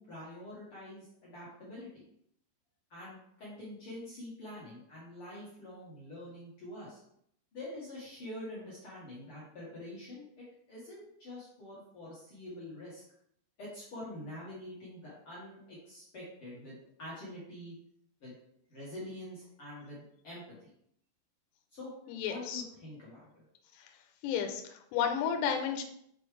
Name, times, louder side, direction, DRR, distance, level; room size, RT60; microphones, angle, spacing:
voice 1, 0.0-2.0 2.9-7.0 7.5-13.0 13.6-17.7 18.2-18.3 18.7-20.7 21.7-23.4, left 1 dB, 60° left, -8 dB, 1.5 m, -46 dB
voice 2, 22.1-22.6 23.7-23.9 24.2-25.8, left 8 dB, 80° left, 4 dB, 2.8 m, -32 dB
6.9 x 4.4 x 3.3 m, 0.71 s
omnidirectional pair, 5.1 m